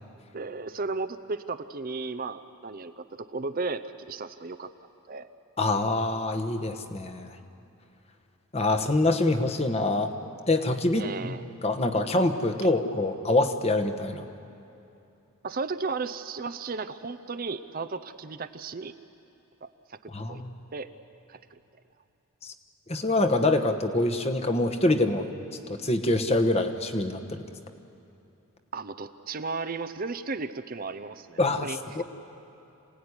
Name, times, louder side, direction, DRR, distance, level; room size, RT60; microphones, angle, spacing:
voice 1, 0.3-4.7 5.1-5.3 11.0-11.4 15.4-18.9 19.6-20.4 20.7-20.9 21.3-21.6 28.7-31.8, right 4 dB, 40° right, 11 dB, 0.6 m, -35 dB
voice 2, 5.6-7.4 8.5-10.1 10.5-11.3 11.6-14.3 20.1-20.5 22.4-22.5 22.9-25.3 25.7-27.4 31.4-31.7 31.9-32.0, left 2 dB, 30° left, 6 dB, 1.2 m, -25 dB
27.0 x 17.5 x 9.7 m, 2.8 s
head